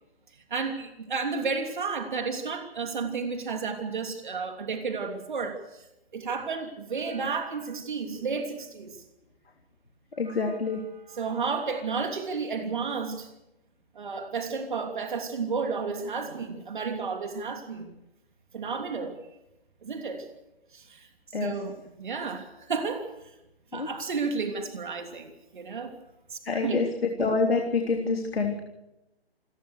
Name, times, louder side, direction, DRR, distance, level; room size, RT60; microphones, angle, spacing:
voice 1, 0.5-5.8 6.1-9.0 10.3-10.6 11.1-13.3 13.9-17.9 18.5-19.2 19.8-20.3 20.7-21.1 21.4-23.1 23.7-25.9 26.3-26.8, right 5 dB, 50° right, 5 dB, 3.1 m, -32 dB
voice 2, 10.2-10.8 21.3-21.5 23.7-23.9 26.4-28.6, left 4 dB, 65° left, 3 dB, 3.4 m, -27 dB
28.0 x 15.0 x 6.5 m, 0.89 s
figure-of-eight pair, 155°, 32 cm